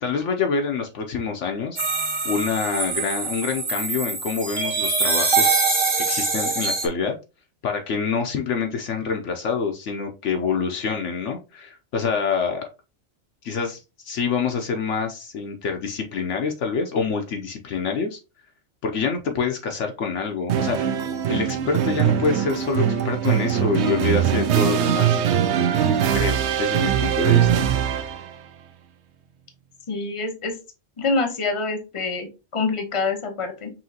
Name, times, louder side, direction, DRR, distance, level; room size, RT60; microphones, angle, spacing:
voice 1, 0.0-1.8 2.2-5.6 6.1-7.1 7.6-12.6 13.4-18.2 18.8-20.9 21.3-25.2 26.1-27.5, left 5 dB, 70° left, 3 dB, 0.9 m, -26 dB
sound 1, 1.8-6.9, right 4 dB, 25° right, 0.8 m, -23 dB
sound 2, 20.5-28.4, right 9 dB, 65° right, 0.8 m, -21 dB
voice 2, 29.9-30.5 31.0-33.7, left 3 dB, 25° left, 5 dB, 0.9 m, -26 dB
5.7 x 2.7 x 2.8 m, 0.29 s
omnidirectional pair, 1.4 m